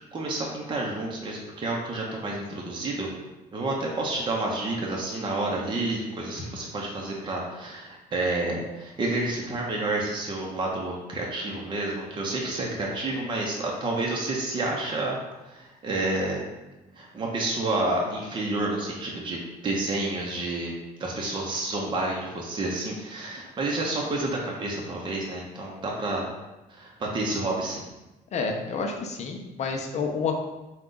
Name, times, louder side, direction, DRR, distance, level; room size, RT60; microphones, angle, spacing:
voice 1, 0.1-3.1 3.5-15.2 15.4-16.4 16.9-20.7 21.0-26.3 26.7-27.8, right 2 dB, 30° right, -2 dB, 0.7 m, -29 dB
voice 2, 28.3-30.4, left 4 dB, 40° left, 2 dB, 0.6 m, -29 dB
3.9 x 2.3 x 3.7 m, 1.0 s
cardioid pair, 110°, 17 cm